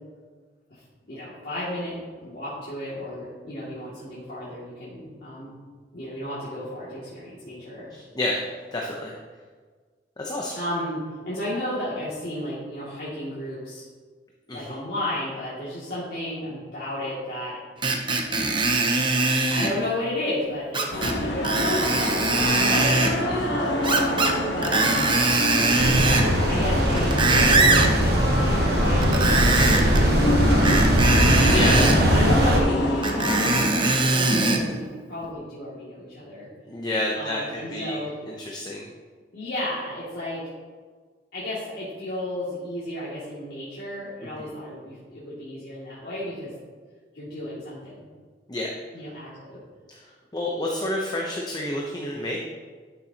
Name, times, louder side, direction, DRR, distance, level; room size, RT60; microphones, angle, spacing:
voice 1, 1.1-5.6 5.9-7.9 10.5-11.0 11.3-13.9 14.5-17.6 19.5-20.9 21.1-23.1 23.4-23.9 24.5-24.9 26.5-31.0 32.1-36.5 37.1-38.1 39.3-40.4 41.3-46.5 47.1-48.1 48.9-49.6, left 1 dB, 60° left, -11 dB, 2.4 m, -33 dB
voice 2, 7.9-8.4 8.7-9.1 10.2-10.5 14.5-14.7 23.3-23.6 31.4-31.9 36.7-38.0 38.3-38.9 44.2-44.3 48.5-48.7 49.9-50.0 50.3-52.4, left 1 dB, 25° left, -2 dB, 0.8 m, -29 dB
Screech, 17.8-19.7 20.7-21.1 21.4-23.1 23.8-24.4 24.6-26.3 26.8-27.9 29.0-30.0 30.6-32.0 33.0-34.6 35.2-35.3, right 2 dB, 30° right, 0.8 m, -21 dB
sound 1, 20.9-33.7, left 1 dB, 80° left, 1.3 m, -27 dB
sound 2, 25.8-32.6, equal, 65° right, 1.3 m, -21 dB
12.0 x 6.8 x 2.9 m, 1.5 s
head